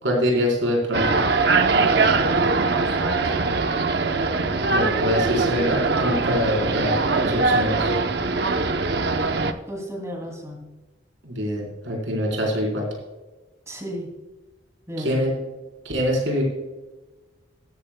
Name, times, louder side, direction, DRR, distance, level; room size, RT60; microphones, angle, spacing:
voice 1, 0.0-1.2 4.7-7.9 11.2-12.9 15.0-15.3 15.8-16.4, equal, 80° right, -2 dB, 4.1 m, -24 dB
sound 1, 0.9-9.5, right 3 dB, 60° right, 0.7 m, -22 dB
voice 2, 2.0-3.3 9.7-10.7 13.7-14.1 14.9-15.2, equal, 15° right, 0 dB, 2.6 m, -34 dB
14.5 x 14.0 x 2.2 m, 1.2 s
head